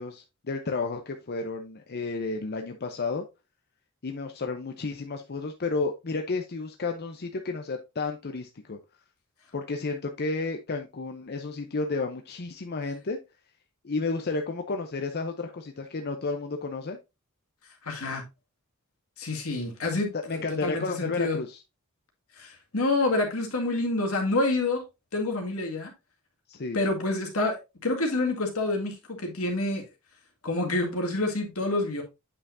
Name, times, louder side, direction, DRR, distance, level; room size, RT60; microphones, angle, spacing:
voice 1, 0.0-3.2 4.0-8.8 9.5-13.2 13.8-17.0 20.1-21.6 26.5-26.8, left 3 dB, 50° left, 0.7 m, -32 dB
voice 2, 17.8-18.2 19.2-21.4 22.4-24.8 25.1-25.9 26.7-29.8 30.4-32.0, left 2 dB, 75° left, 2.0 m, -28 dB
8.4 x 5.6 x 2.6 m
head